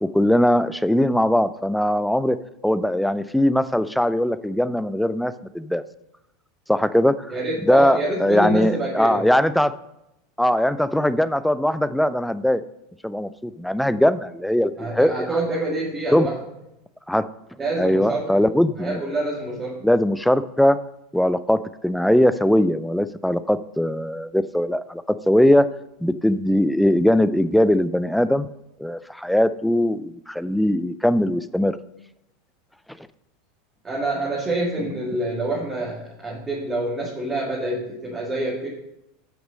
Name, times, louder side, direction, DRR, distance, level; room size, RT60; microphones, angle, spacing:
voice 1, 0.0-2.4 2.6-5.8 6.7-7.3 7.6-9.7 10.4-12.6 13.0-15.3 16.1-16.3 17.1-17.3 17.8-19.0 19.8-20.8 21.1-25.7 26.0-28.5 28.8-31.7, left 1 dB, ahead, 14 dB, 0.4 m, -20 dB
voice 2, 7.3-9.2 14.8-16.4 17.6-18.4 18.8-19.8 33.8-38.7, right 2 dB, 20° right, -3 dB, 1.9 m, -26 dB
8.0 x 6.1 x 5.1 m, 0.86 s
figure-of-eight pair, 80°, 0 cm